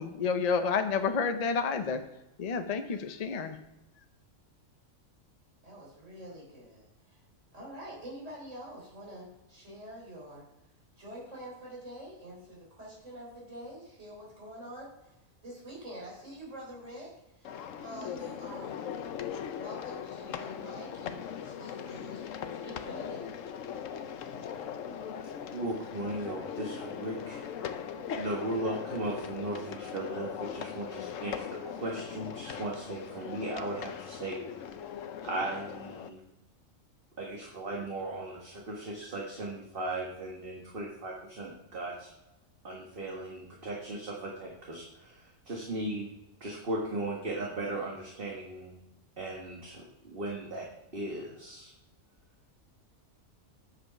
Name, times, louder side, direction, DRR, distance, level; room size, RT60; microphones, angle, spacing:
voice 1, 0.0-2.0 2.4-3.6, left 5 dB, 50° left, 7 dB, 0.5 m, -29 dB
voice 2, 5.6-7.2 7.5-10.5 11.0-15.1 15.4-17.5 17.8-18.8 19.6-23.3, equal, 60° right, -3 dB, 4.0 m, -46 dB
sound 1, 17.4-36.1, left 8 dB, 70° left, 1.0 m, -40 dB
voice 3, 25.5-27.4 28.1-34.4 35.2-36.2 37.2-42.1 42.6-46.1 46.4-48.8 49.2-50.7 50.9-51.7, right 2 dB, 45° right, -2 dB, 1.6 m, -37 dB
8.7 x 7.0 x 5.6 m, 0.96 s
omnidirectional pair, 1.4 m